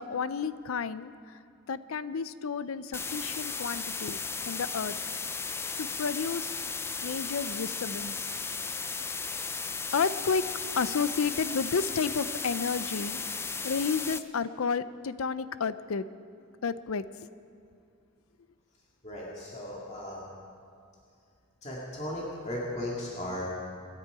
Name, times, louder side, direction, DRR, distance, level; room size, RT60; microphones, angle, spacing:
voice 1, 0.0-1.4 1.7-4.2 4.4-5.0 5.8-6.5 7.0-8.3 9.7-10.4 10.8-13.2 13.6-16.1 16.6-17.1, left 5 dB, 80° left, 14 dB, 0.5 m, -31 dB
sound 1, 2.9-14.2, left 4 dB, 10° left, 0.3 m, -35 dB
voice 2, 19.0-20.2 21.6-23.4, left 1 dB, 30° left, -5 dB, 2.1 m, -36 dB
24.5 x 10.5 x 4.8 m, 2.4 s
head